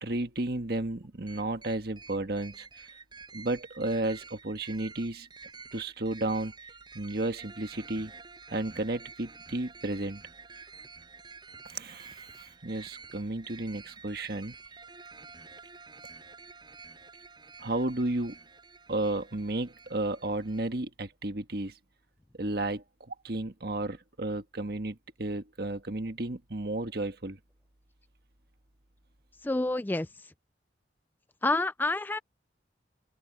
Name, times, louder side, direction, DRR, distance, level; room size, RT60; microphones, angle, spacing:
voice 1, 0.0-2.8 3.3-5.3 5.7-6.5 6.9-8.1 8.5-10.2 11.6-14.5 17.6-18.4 18.9-21.7 22.4-27.4, right 2 dB, 55° right, 1.5 m, -33 dB
sound 1, 1.3-20.7, right 4 dB, 25° right, 7.7 m, -50 dB
voice 2, 29.4-30.3 31.4-32.2, left 2 dB, 10° left, 0.3 m, -29 dB
open air
head